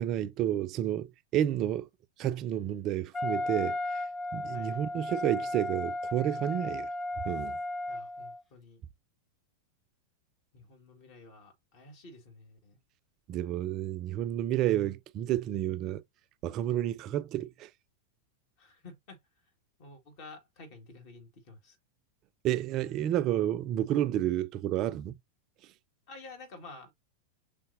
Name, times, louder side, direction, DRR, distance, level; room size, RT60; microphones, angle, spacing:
voice 1, 0.0-1.9 2.2-4.0 4.3-6.9 7.2-7.6 13.3-16.0 16.4-17.7 22.4-25.1, right 12 dB, 35° right, 0.4 m, -30 dB
Wind instrument woodwind instrument, 3.1-8.4, left 2 dB, 15° left, 0.7 m, -35 dB
voice 2, 7.9-8.8 10.5-12.8 18.6-19.2 19.8-21.8 26.1-26.9, left 3 dB, 45° left, 1.6 m, -51 dB
5.5 x 3.5 x 2.6 m
figure-of-eight pair, 90°, 0 cm